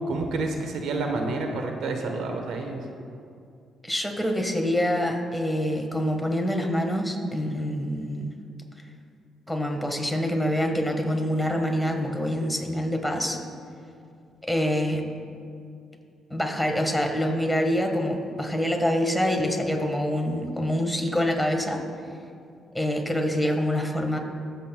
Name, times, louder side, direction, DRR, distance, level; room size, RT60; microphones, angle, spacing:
voice 1, 0.1-2.9, right 3 dB, 75° right, 3 dB, 1.1 m, -29 dB
voice 2, 3.8-8.3 9.5-13.4 14.4-15.0 16.3-21.8 22.7-24.2, equal, 5° left, 2 dB, 1.4 m, -26 dB
22.5 x 7.8 x 2.3 m, 2.4 s
cardioid pair, 90°, 0 cm